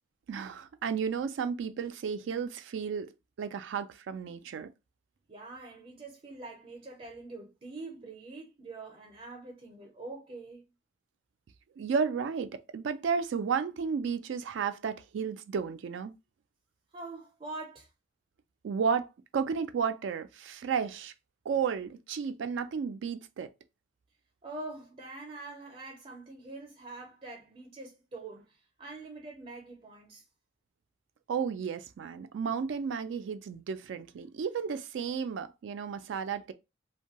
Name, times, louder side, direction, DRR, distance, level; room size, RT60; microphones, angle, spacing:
voice 1, 0.3-3.1 3.4-4.7 11.8-16.1 18.6-19.1 19.3-21.1 21.5-23.5 31.3-36.5, right 6 dB, 85° right, 0.3 m, -33 dB
voice 2, 5.3-10.6 16.9-17.9 24.4-30.3, right 2 dB, 35° right, 0.5 m, -44 dB
2.6 x 2.2 x 2.8 m
head